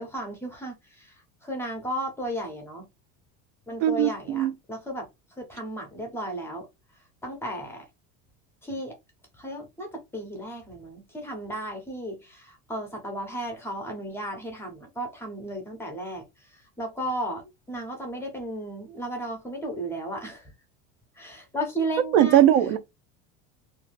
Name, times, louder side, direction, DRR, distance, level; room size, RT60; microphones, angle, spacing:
voice 1, 0.0-2.9 3.7-6.7 7.2-7.9 8.6-8.9 9.4-20.5 21.2-22.4, right 1 dB, 10° left, 0.4 m, -34 dB
voice 2, 3.8-4.5 22.1-22.8, right 11 dB, 80° right, 0.6 m, -19 dB
2.4 x 2.1 x 3.1 m
cardioid pair, 180°, 33 cm